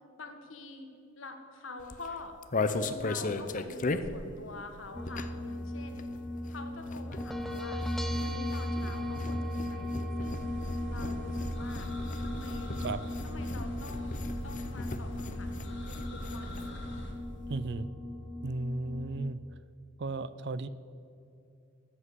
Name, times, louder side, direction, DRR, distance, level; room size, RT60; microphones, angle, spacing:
voice 1, 0.2-0.9 1.1-6.0 6.5-7.9 8.2-10.5 10.9-11.9 12.2-12.8 13.2-16.8, left 2 dB, 80° left, 6 dB, 1.7 m, -46 dB
sound 1, 1.8-5.5 5.8-16.7 17.0-17.1 17.3-17.6, left 3 dB, 40° left, 0.7 m, -37 dB
sound 2, 4.9-19.2, left 1 dB, ahead, 0.8 m, -37 dB
sound 3, 10.3-17.1, equal, 65° left, 2.4 m, -42 dB
voice 2, 17.5-17.9 18.4-19.4 20.0-20.7, right 2 dB, 60° right, 16 dB, 0.6 m, -34 dB
13.5 x 7.9 x 8.1 m, 2.7 s
head